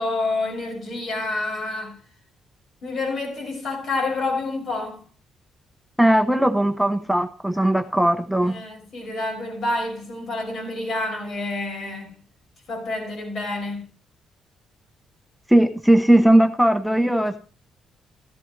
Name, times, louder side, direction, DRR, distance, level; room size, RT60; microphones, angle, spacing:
voice 1, 0.0-2.0 2.8-5.0 8.4-12.1 12.7-13.8, left 2 dB, 60° left, 6.3 m, -28 dB
voice 2, 6.0-8.5 15.5-17.4, right 1 dB, ahead, 0.8 m, -18 dB
14.5 x 13.0 x 3.2 m
cardioid pair, 90°, 0 cm